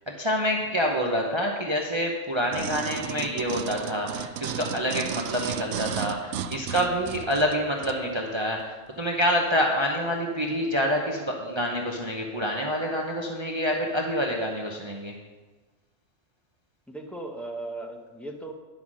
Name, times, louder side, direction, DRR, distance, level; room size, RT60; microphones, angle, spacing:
voice 1, 0.1-15.1, equal, 25° right, 0 dB, 0.9 m, -27 dB
sound 1, 2.5-8.0 8.6-8.7, right 8 dB, 75° right, 0.8 m, -34 dB
voice 2, 16.9-18.5, right 2 dB, ahead, 2 dB, 0.8 m, -37 dB
10.5 x 5.7 x 6.2 m, 1.3 s
omnidirectional pair, 1.2 m